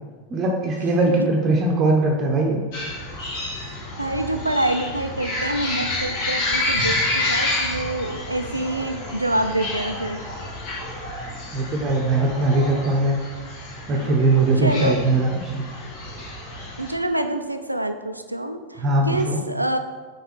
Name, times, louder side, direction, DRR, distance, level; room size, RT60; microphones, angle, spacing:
voice 1, 0.3-2.6 11.5-13.2 13.9-15.7 18.8-19.4, right 2 dB, 30° right, 1 dB, 0.8 m, -20 dB
sound 1, 2.7-16.9, left 2 dB, 50° left, 1.8 m, -29 dB
voice 2, 4.0-10.2 14.3-14.9 16.8-19.8, right 1 dB, 85° right, 8 dB, 0.4 m, -26 dB
4.7 x 4.5 x 4.4 m, 1.4 s
figure-of-eight pair, 90°, 0 cm